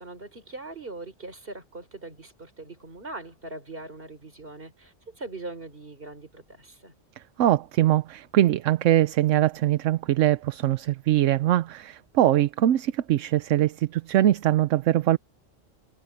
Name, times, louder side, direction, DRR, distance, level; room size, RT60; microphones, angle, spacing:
voice 1, 0.0-6.9, right 2 dB, 45° right, 3.9 m, -41 dB
voice 2, 7.4-15.2, right 13 dB, 75° right, 1.0 m, -22 dB
omnidirectional pair, 1.3 m